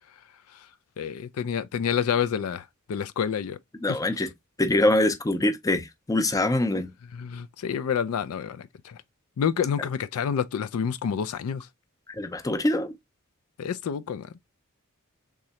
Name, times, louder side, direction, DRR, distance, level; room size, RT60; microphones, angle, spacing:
voice 1, 1.0-3.6 3.9-4.0 7.1-9.0 9.4-11.7 13.6-14.3, left 7 dB, 75° left, 0.4 m, -28 dB
voice 2, 3.8-4.3 4.6-6.9 12.2-12.9, left 1 dB, 15° left, 0.5 m, -24 dB
3.6 x 3.1 x 2.8 m
head